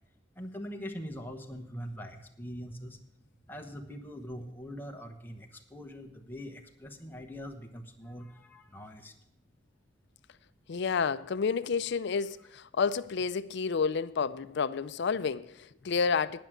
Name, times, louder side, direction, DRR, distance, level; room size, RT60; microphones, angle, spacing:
voice 1, 0.4-3.0 3.5-9.1, equal, 10° left, 1.1 m, -42 dB
voice 2, 10.7-16.4, left 5 dB, 60° left, 0.5 m, -30 dB
10.5 x 6.0 x 8.9 m
head